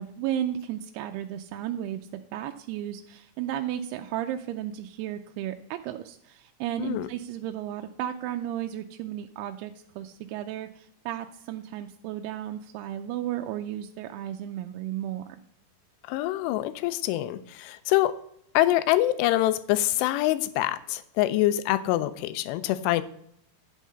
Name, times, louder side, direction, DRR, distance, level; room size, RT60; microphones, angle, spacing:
voice 1, 0.0-15.4, right 11 dB, 80° right, 5 dB, 2.4 m, -34 dB
voice 2, 16.1-18.2 18.5-23.0, left 15 dB, 85° left, 13 dB, 2.7 m, -25 dB
10.5 x 3.7 x 7.3 m, 0.71 s
omnidirectional pair, 4.9 m